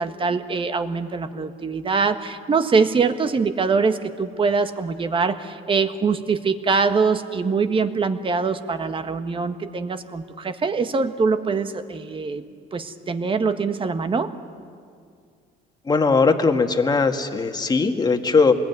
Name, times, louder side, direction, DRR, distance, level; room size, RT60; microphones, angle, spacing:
voice 1, 0.0-12.4 12.7-14.3, right 4 dB, 30° right, 9 dB, 1.5 m, -23 dB
voice 2, 15.9-18.5, left 4 dB, 25° left, 5 dB, 1.9 m, -19 dB
26.5 x 20.5 x 9.5 m, 2.2 s
cardioid pair, 110°, 17 cm